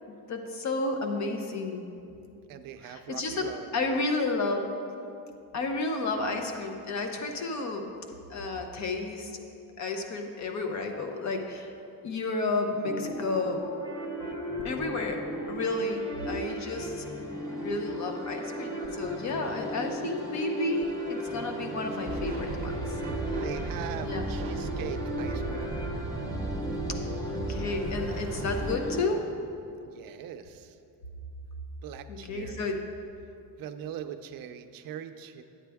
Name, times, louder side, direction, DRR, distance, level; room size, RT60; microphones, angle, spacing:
voice 1, 0.1-1.9 2.8-4.8 5.5-7.9 8.3-9.4 9.8-11.7 12.0-13.6 14.6-17.0 17.5-22.7 24.0-24.2 27.3-29.4 32.1-32.8, left 3 dB, 50° left, 4 dB, 0.8 m, -31 dB
voice 2, 2.5-4.0 21.4-21.6 23.0-25.8 29.8-30.8 31.8-32.8 33.6-35.4, right 9 dB, 65° right, 9 dB, 0.5 m, -42 dB
sound 1, 12.8-29.1, equal, 10° left, 0.7 m, -36 dB
sound 2, 22.1-28.8, right 3 dB, 25° right, 0.8 m, -35 dB
8.9 x 8.8 x 3.5 m, 2.6 s
cardioid pair, 175°, 37 cm